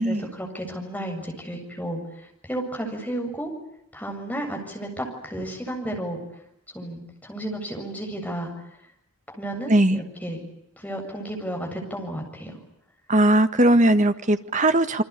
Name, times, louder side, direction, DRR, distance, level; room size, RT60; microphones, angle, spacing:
voice 1, 0.0-2.0 2.4-3.5 3.9-6.2 6.7-8.5 9.3-10.4 10.8-12.6, right 1 dB, 5° left, 2 dB, 7.5 m, -32 dB
voice 2, 9.7-10.0 13.1-15.0, right 1 dB, 35° right, 10 dB, 1.6 m, -19 dB
28.0 x 24.5 x 8.4 m, 0.78 s
head